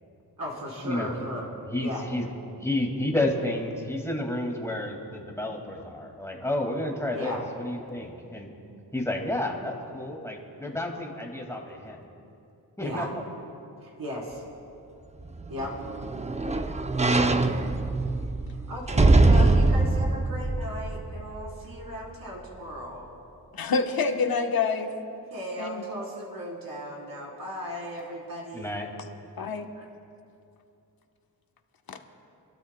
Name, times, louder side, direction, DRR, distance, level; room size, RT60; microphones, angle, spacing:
voice 1, 0.4-1.5 1.8-2.0 3.2-3.3 7.1-7.4 12.8-13.1 13.8-14.4 15.5-15.7 18.7-23.1 25.3-28.7 29.8-29.9, equal, 60° right, -3 dB, 3.8 m, -36 dB
voice 2, 1.7-2.3 2.6-8.5 8.9-12.0 12.8-13.2 28.5-28.9, left 1 dB, 5° left, 0 dB, 2.1 m, -31 dB
sound 1, 15.3-21.6 22.0-22.1, right 2 dB, 15° right, 0.6 m, -23 dB
voice 3, 23.5-24.9 25.6-25.8 29.4-29.7 31.9-32.0, left 5 dB, 60° left, 5 dB, 1.1 m, -27 dB
28.0 x 12.5 x 2.2 m, 2.7 s
cardioid pair, 75°, 39 cm